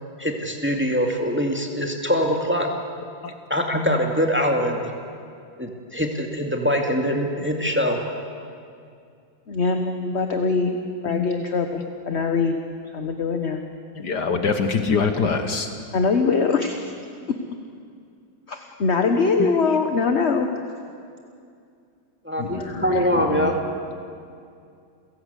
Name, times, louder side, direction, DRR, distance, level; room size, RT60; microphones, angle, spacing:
voice 1, 0.2-2.7 3.5-4.9 5.6-8.0 22.2-23.6, equal, 5° right, 2 dB, 2.0 m, -23 dB
voice 2, 9.5-10.8 11.0-12.6 12.9-13.6 15.9-16.9 18.5-20.5, left 4 dB, 40° left, 5 dB, 1.2 m, -22 dB
voice 3, 14.0-15.7 19.4-19.5 22.4-23.5, left 5 dB, 60° left, 7 dB, 1.7 m, -25 dB
29.0 x 17.0 x 8.3 m, 2.4 s
omnidirectional pair, 2.2 m